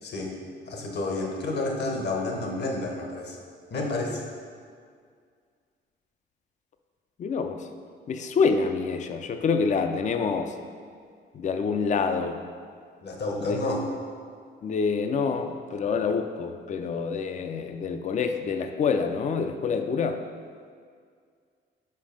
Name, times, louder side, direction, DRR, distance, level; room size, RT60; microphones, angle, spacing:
voice 1, 0.0-0.3 0.7-3.4 3.7-4.2 13.0-13.9, left 2 dB, 60° left, 1 dB, 1.2 m, -30 dB
voice 2, 7.2-7.6 8.1-10.5 11.3-12.4 13.5-13.6 14.6-20.2, left 5 dB, 40° left, 7 dB, 0.4 m, -27 dB
5.4 x 4.8 x 5.2 m, 2.1 s
cardioid pair, 90°, 20 cm